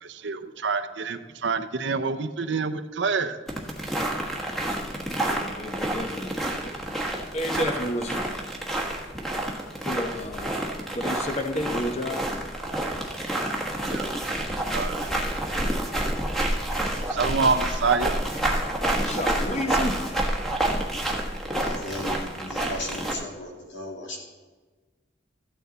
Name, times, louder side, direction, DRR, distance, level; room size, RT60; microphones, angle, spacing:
voice 1, 0.0-3.4 13.8-14.1 14.7-15.3 17.1-18.2, right 4 dB, 80° right, 9 dB, 0.7 m, -27 dB
sound 1, 3.5-23.1, right 1 dB, ahead, 1.2 m, -29 dB
voice 2, 5.3-6.4 7.3-8.2 9.8-12.2 19.0-20.0 22.4-22.5, left 1 dB, 35° left, 5 dB, 0.9 m, -31 dB
voice 3, 21.5-24.2, left 1 dB, 80° left, 0 dB, 2.5 m, -36 dB
14.0 x 9.1 x 4.0 m, 1.3 s
head